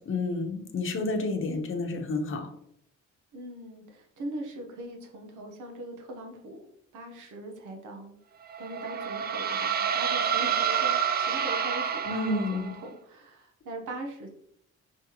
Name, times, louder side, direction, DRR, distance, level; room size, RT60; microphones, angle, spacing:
voice 1, 0.1-2.5 12.1-12.7, left 3 dB, 45° left, 3 dB, 0.9 m, -30 dB
voice 2, 3.3-6.6 6.9-8.1 8.6-14.3, right 1 dB, 85° right, 3 dB, 1.0 m, -41 dB
sound 1, 8.5-12.8, right 7 dB, 35° right, 0.4 m, -28 dB
5.3 x 3.4 x 2.9 m, 0.69 s
cardioid pair, 90°, 30 cm